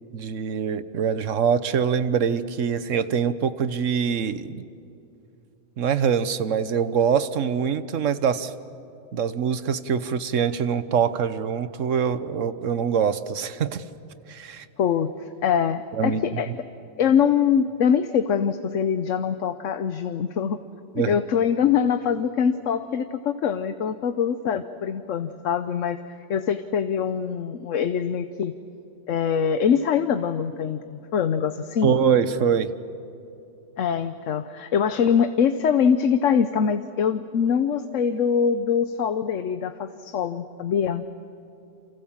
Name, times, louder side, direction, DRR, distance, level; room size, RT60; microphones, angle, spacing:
voice 1, 0.1-4.7 5.8-8.5 9.1-13.8 14.3-14.7 16.0-16.2 21.0-21.2 31.8-32.7, right 7 dB, 90° right, 13 dB, 1.3 m, -24 dB
voice 2, 14.8-16.5 17.0-20.6 21.1-26.0 26.3-28.5 29.1-31.9 33.8-41.0, left 7 dB, 85° left, 10 dB, 1.2 m, -23 dB
29.0 x 26.0 x 7.3 m, 2.8 s
omnidirectional pair, 1.3 m